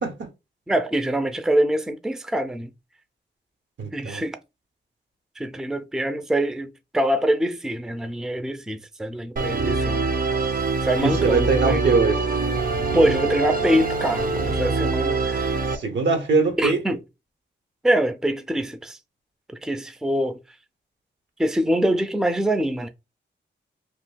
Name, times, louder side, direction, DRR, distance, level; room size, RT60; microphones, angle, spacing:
voice 1, 0.7-2.7 3.9-4.4 5.4-10.1 10.8-11.8 12.9-15.5 16.6-17.0 17.8-19.0 19.6-20.4 21.4-22.9, right 1 dB, 5° right, 0.5 m, -24 dB
voice 2, 3.8-4.2 11.0-12.2 15.7-16.8, right 4 dB, 70° right, 0.9 m, -22 dB
Musical instrument, 9.4-15.8, right 3 dB, 45° right, 0.6 m, -24 dB
2.9 x 2.2 x 3.4 m
cardioid pair, 50°, 19 cm